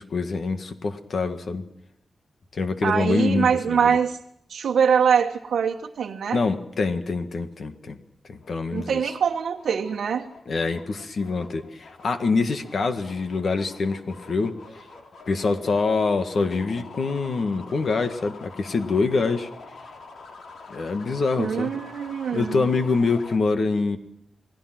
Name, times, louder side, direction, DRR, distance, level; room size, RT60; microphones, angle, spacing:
voice 1, 0.0-1.6 2.5-4.0 6.3-8.0 8.3-9.1 10.4-14.8 15.3-19.5 20.7-21.7 22.3-24.0, left 4 dB, 50° left, 7 dB, 1.8 m, -25 dB
voice 2, 2.8-4.2 4.5-6.4 8.7-10.2 21.4-22.6, right 7 dB, 85° right, 1 dB, 1.3 m, -23 dB
sound 1, 8.4-23.4, left 3 dB, 75° left, 4.3 m, -46 dB
28.0 x 20.0 x 6.1 m, 0.76 s
wide cardioid pair, 155°, 0 cm